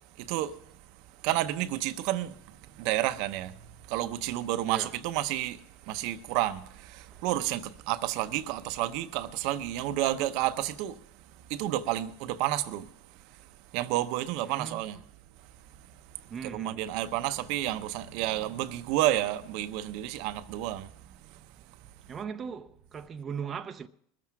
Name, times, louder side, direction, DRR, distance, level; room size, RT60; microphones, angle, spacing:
voice 1, 0.2-0.6 1.2-2.4 2.8-3.5 3.9-5.6 5.9-11.0 11.5-12.9 13.7-15.0 16.4-20.9, right 14 dB, 65° right, 0.7 m, -30 dB
voice 2, 14.4-14.9 16.3-17.0 22.1-23.9, right 7 dB, 30° right, 0.5 m, -38 dB
21.5 x 7.5 x 6.0 m
supercardioid pair, 110°, 0 cm